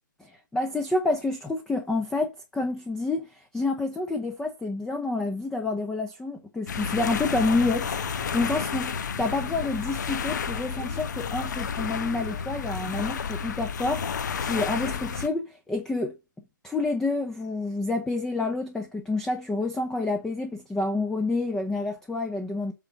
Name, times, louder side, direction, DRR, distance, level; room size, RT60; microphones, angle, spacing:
voice 1, 0.2-16.1 16.6-22.7, left 3 dB, 5° left, 0.7 m, -28 dB
sound 1, 6.7-15.3, left 6 dB, 60° left, 1.0 m, -31 dB
8.3 x 3.9 x 5.2 m
hypercardioid pair, 145°, 11 cm